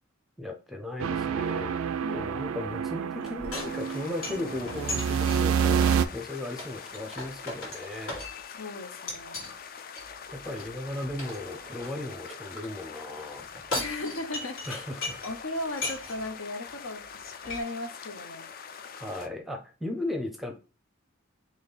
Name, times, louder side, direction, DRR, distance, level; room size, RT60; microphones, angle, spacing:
voice 1, 0.4-1.7 2.1-8.2 10.3-13.4 14.7-15.2 19.0-20.5, left 2 dB, ahead, 5 dB, 0.6 m, -36 dB
sound 1, 1.0-6.1, right 7 dB, 85° right, 0.4 m, -28 dB
sound 2, 3.2-8.6 9.1-9.5 9.9-12.7 13.4-15.4 15.7-16.3 16.7-16.8 17.0-17.6, left 2 dB, 90° left, 2.1 m, -38 dB
sound 3, 3.5-19.3, left 7 dB, 45° left, 0.4 m, -44 dB
voice 2, 8.6-9.5 13.7-14.9 15.2-18.5, left 2 dB, 70° left, 7 dB, 0.8 m, -37 dB
4.1 x 3.0 x 3.9 m, 0.32 s
head